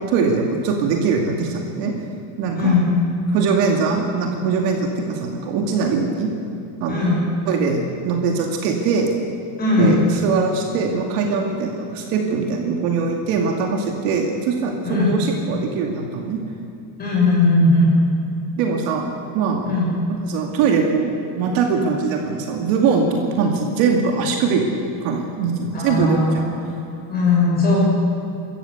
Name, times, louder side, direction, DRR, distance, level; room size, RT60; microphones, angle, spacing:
voice 1, 0.1-1.9 2.4-2.8 3.3-6.3 6.8-9.1 9.8-16.4 18.6-19.7 20.1-24.6 25.0-26.4, right 5 dB, 50° right, 2 dB, 2.5 m, -22 dB
voice 2, 2.5-2.9 6.9-7.2 9.6-10.0 14.9-15.1 17.0-17.9 19.7-19.9 25.7-26.5 27.1-27.8, left 3 dB, 20° left, -4 dB, 7.0 m, -18 dB
26.0 x 14.5 x 8.1 m, 2.7 s
cardioid pair, 175°, 46 cm